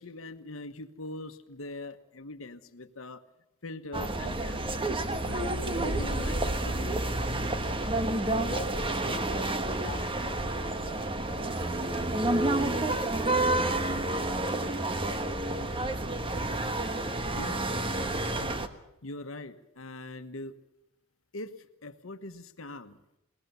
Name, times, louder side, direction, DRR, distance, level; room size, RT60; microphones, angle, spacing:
voice 1, 0.0-3.2 3.6-4.9 5.2-6.9 8.2-8.6 17.3-17.7 18.2-18.4 19.0-20.6 21.3-23.0, left 2 dB, 80° left, 1.3 m, -42 dB
sound 1, 3.9-18.7, right 2 dB, 25° right, 1.3 m, -29 dB
voice 2, 8.4-14.4, left 3 dB, 35° left, 1.0 m, -46 dB
21.0 x 19.5 x 6.9 m
head